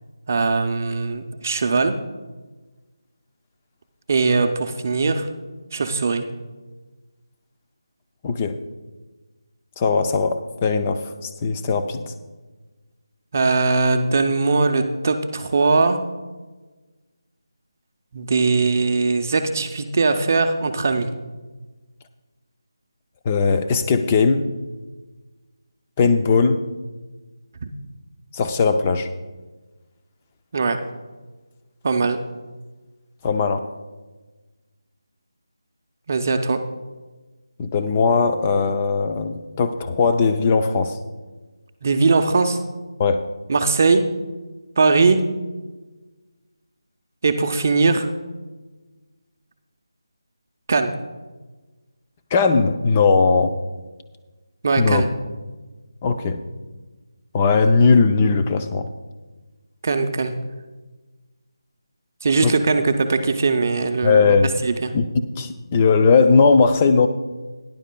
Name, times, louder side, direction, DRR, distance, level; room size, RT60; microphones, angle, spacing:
voice 1, 0.3-1.9 4.1-5.3 5.7-6.3 13.3-16.0 18.1-21.1 27.6-27.7 30.5-30.8 31.8-32.2 36.1-36.6 41.8-42.6 43.5-44.0 44.8-45.2 47.2-48.1 50.7-50.9 54.6-55.1 59.8-60.3 62.2-64.9, right 4 dB, 35° right, 6 dB, 0.6 m, -20 dB
voice 2, 8.2-8.6 9.8-12.1 23.2-24.4 26.0-26.6 28.3-29.1 33.2-33.6 37.6-41.0 43.0-43.2 52.3-53.5 54.8-55.0 56.0-56.4 57.3-58.9 62.4-62.5 64.0-64.5 64.9-65.0 65.4-67.1, left 4 dB, 15° left, 7 dB, 0.5 m, -18 dB
16.5 x 10.5 x 2.2 m, 1.3 s
figure-of-eight pair, 170°, 2 cm